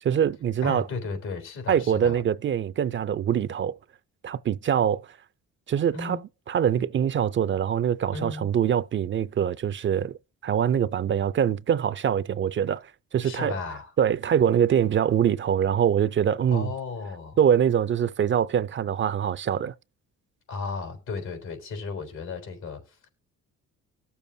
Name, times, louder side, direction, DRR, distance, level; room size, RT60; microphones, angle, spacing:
voice 1, 0.0-0.9 1.7-3.8 4.2-5.1 5.7-13.6 14.0-16.7 17.4-19.7, right 9 dB, 40° right, 0.4 m, -24 dB
voice 2, 0.6-2.2 5.9-6.2 8.1-8.5 13.2-13.9 16.5-17.4 20.5-23.1, left 4 dB, 90° left, 3.7 m, -34 dB
20.0 x 7.0 x 2.7 m
cardioid pair, 90°, 30 cm